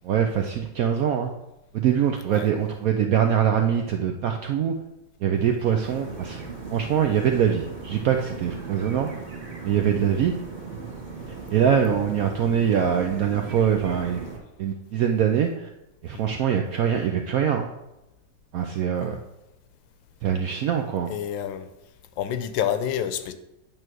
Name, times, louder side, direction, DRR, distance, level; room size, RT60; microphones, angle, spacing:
voice 1, 0.0-1.3 1.7-4.8 5.2-6.4 6.7-9.1 9.6-10.3 11.5-14.2 14.6-15.7 16.0-17.7 18.5-19.2 20.2-21.1, right 8 dB, 75° right, 4 dB, 0.8 m, -23 dB
sound 1, 5.8-14.4, right 4 dB, 25° right, 1.3 m, -38 dB
voice 2, 16.1-16.4 19.0-19.1 21.1-21.7 22.2-23.3, left 9 dB, 80° left, 10 dB, 1.4 m, -29 dB
9.0 x 3.3 x 6.1 m, 0.93 s
omnidirectional pair, 2.1 m